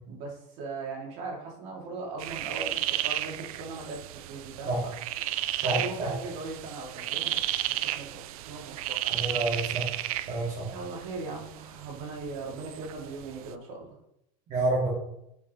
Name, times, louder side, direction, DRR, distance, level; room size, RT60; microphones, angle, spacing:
voice 1, 0.1-4.9 5.6-7.4 7.8-9.1 10.7-13.9, right 3 dB, 65° right, -1 dB, 2.6 m, -38 dB
sound 1, 2.2-13.5, right 14 dB, 90° right, 0.4 m, -34 dB
voice 2, 5.6-6.1 9.1-9.9 10.3-10.7 14.5-14.9, right 2 dB, 40° right, -6 dB, 2.4 m, -28 dB
8.5 x 5.0 x 3.1 m, 0.80 s
supercardioid pair, 145°, 18 cm